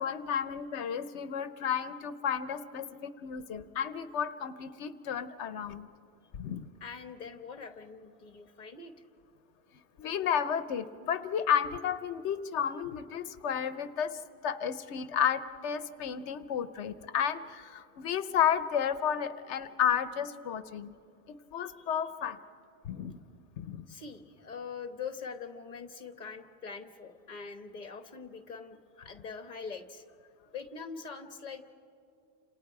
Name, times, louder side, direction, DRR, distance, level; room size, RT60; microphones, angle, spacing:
voice 1, 0.0-5.9 6.3-6.7 10.0-20.9 21.5-22.4 22.8-23.2 23.6-23.9, left 8 dB, 90° left, 12 dB, 1.0 m, -32 dB
voice 2, 6.8-8.9 23.9-30.0 30.5-31.6, left 5 dB, 40° left, 7 dB, 1.3 m, -43 dB
29.5 x 27.5 x 4.7 m, 2.7 s
omnidirectional pair, 1.1 m